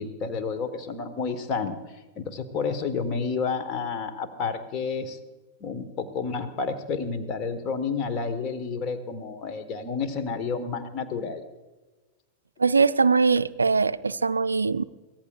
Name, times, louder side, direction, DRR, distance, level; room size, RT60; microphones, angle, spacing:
voice 1, 0.0-5.2 5.6-11.4, left 5 dB, 35° left, 7 dB, 1.4 m, -30 dB
voice 2, 12.6-14.8, right 4 dB, 75° right, 16 dB, 0.4 m, -21 dB
23.5 x 17.0 x 2.5 m, 1.2 s
figure-of-eight pair, 90°, 0 cm